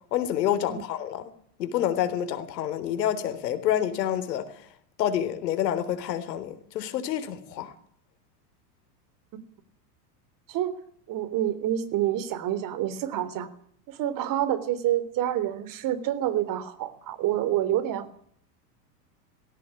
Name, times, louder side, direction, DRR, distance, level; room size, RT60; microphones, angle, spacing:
voice 1, 0.1-1.3 1.6-4.5 5.0-7.7, left 10 dB, 80° left, 3.9 m, -28 dB
voice 2, 11.1-13.5 13.9-18.2, right 12 dB, 40° right, 3.5 m, -28 dB
19.0 x 16.5 x 9.7 m
supercardioid pair, 125°, 49 cm